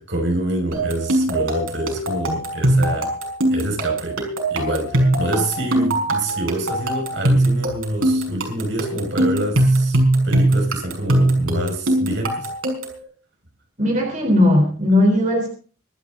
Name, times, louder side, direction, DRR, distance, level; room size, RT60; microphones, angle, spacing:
voice 1, 0.0-3.1 3.5-4.2 4.5-10.0 10.2-12.5, right 1 dB, 60° right, 5.7 m, -26 dB
sound 1, 0.7-13.0, right 1 dB, 90° right, 5.8 m, -21 dB
voice 2, 13.8-15.5, left 1 dB, 35° right, 3.8 m, -17 dB
25.0 x 10.5 x 3.8 m
head